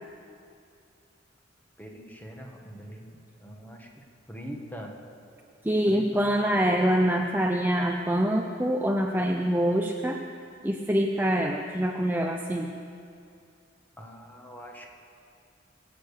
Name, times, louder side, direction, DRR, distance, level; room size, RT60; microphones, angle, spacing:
voice 1, 1.8-4.9 5.9-6.5 14.0-14.9, equal, 10° left, 1 dB, 1.6 m, -43 dB
voice 2, 5.6-10.2 10.6-12.7, equal, 10° right, 2 dB, 0.6 m, -25 dB
23.0 x 8.5 x 6.7 m, 2.5 s
head